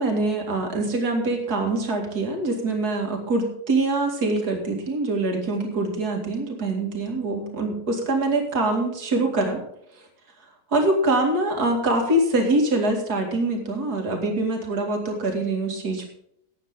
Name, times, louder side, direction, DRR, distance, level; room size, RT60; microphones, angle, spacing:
voice 1, 0.0-9.6 10.7-16.1, right 2 dB, 60° right, 2 dB, 2.8 m, -24 dB
15.5 x 9.8 x 3.8 m, 0.72 s
omnidirectional pair, 1.9 m